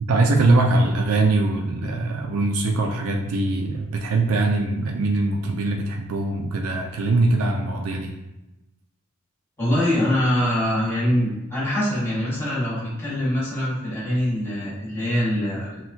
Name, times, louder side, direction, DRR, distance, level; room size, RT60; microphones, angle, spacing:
voice 1, 0.0-8.1, right 2 dB, 80° right, 1 dB, 0.4 m, -22 dB
voice 2, 9.6-15.9, left 1 dB, 10° left, -9 dB, 1.4 m, -23 dB
6.0 x 2.3 x 2.7 m, 0.98 s
head